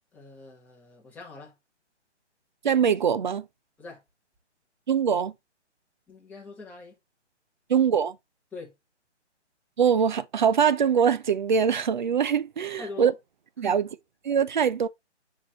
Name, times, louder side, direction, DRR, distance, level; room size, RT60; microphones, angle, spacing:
voice 1, 0.1-1.6 3.8-4.0 6.1-7.0 8.5-8.7 12.8-13.1 13.6-13.8, left 3 dB, 5° left, 1.4 m, -42 dB
voice 2, 2.6-3.5 4.9-5.3 7.7-8.2 9.8-13.1 13.6-13.9 14.2-14.9, right 7 dB, 40° right, 0.5 m, -23 dB
7.4 x 4.6 x 3.1 m
figure-of-eight pair, 140°, 35 cm